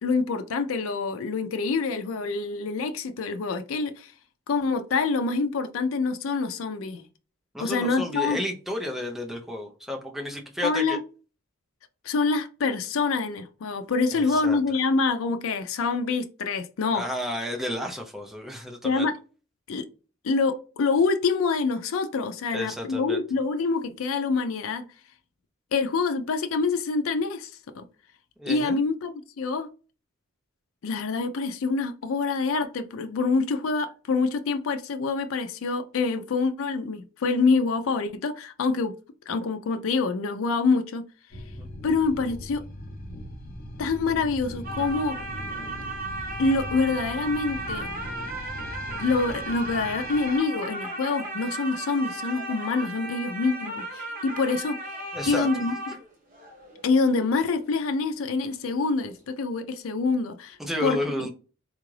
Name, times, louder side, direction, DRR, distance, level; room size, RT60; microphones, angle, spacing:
voice 1, 0.0-4.1 4.5-7.1 7.6-8.4 10.6-11.0 12.0-17.0 18.8-19.1 19.7-19.9 20.2-24.8 25.7-27.8 28.5-29.7 30.8-38.9 39.3-41.0 41.8-42.6 43.8-45.2 46.4-47.9 49.0-54.8 55.3-55.7 56.8-61.0, left 4 dB, 75° left, 0.4 m, -26 dB
voice 2, 7.5-11.0 14.1-14.6 16.9-19.1 22.5-23.2 28.4-28.8 41.6-41.7 55.1-55.6 60.6-61.3, left 1 dB, ahead, 0.5 m, -32 dB
sound 1, 41.3-50.4, left 1 dB, 45° left, 0.8 m, -39 dB
sound 2, 44.6-58.5 58.8-58.9, right 2 dB, 40° right, 0.9 m, -36 dB
3.7 x 2.4 x 3.1 m
head